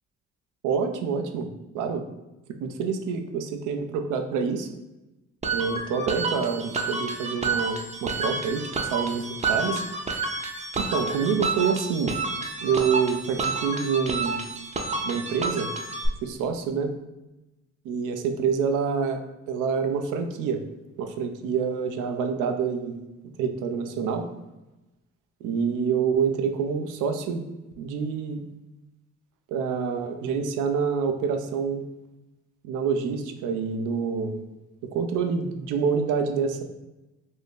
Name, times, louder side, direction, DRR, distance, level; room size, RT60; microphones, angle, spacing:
voice 1, 0.6-1.5 1.7-2.0 2.5-4.7 5.5-9.8 10.8-12.2 12.6-14.4 15.0-15.7 16.2-16.9 17.8-20.6 21.0-23.0 23.4-24.3 25.4-27.5 27.8-28.5 29.5-31.8 32.6-34.4 34.9-36.6, right 6 dB, 85° right, 6 dB, 0.5 m, -27 dB
sound 1, 5.4-16.1, right 3 dB, 25° right, 0.5 m, -30 dB
2.7 x 2.6 x 3.5 m, 1.0 s
cardioid pair, 90°, 30 cm